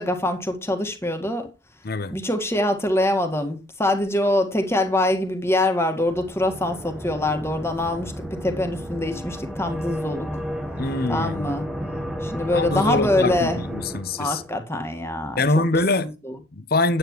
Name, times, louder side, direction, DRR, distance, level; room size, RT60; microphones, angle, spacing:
voice 1, 0.0-1.5 2.1-10.3 11.1-11.6 12.2-13.6 14.2-15.6 16.2-16.3, left 1 dB, 15° left, 1.7 m, -24 dB
voice 2, 1.8-2.2 10.8-11.5 12.5-14.4 15.4-16.1 16.5-17.0, left 2 dB, 50° left, 0.8 m, -24 dB
sound 1, 6.1-14.6, equal, 5° right, 1.2 m, -32 dB
9.6 x 8.8 x 3.1 m
head